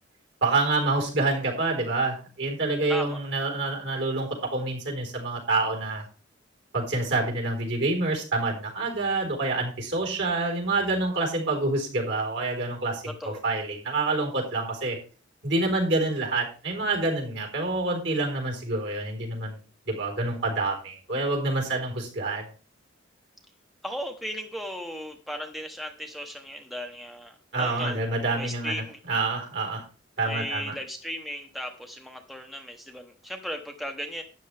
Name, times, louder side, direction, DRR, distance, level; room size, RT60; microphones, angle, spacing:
voice 1, 0.4-6.1 6.7-15.0 15.4-19.6 19.9-22.4 27.5-29.8 30.2-30.7, right 2 dB, 60° right, 2 dB, 4.0 m, -27 dB
voice 2, 2.9-3.2 13.2-13.4 23.8-28.0 28.3-29.0 30.2-34.2, equal, ahead, 4 dB, 0.8 m, -36 dB
12.0 x 9.0 x 3.3 m, 0.37 s
head